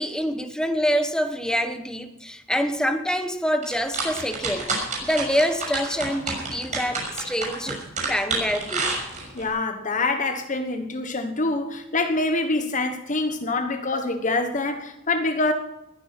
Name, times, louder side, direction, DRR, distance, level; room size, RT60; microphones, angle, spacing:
voice 1, 0.0-4.7 5.0-7.8 8.1-8.9, equal, 5° left, 1.3 m, -26 dB
sound 1, 3.6-9.5, right 3 dB, 40° right, 6.5 m, -29 dB
voice 2, 9.3-15.5, left 2 dB, 40° left, 1.2 m, -25 dB
20.5 x 10.0 x 6.0 m
head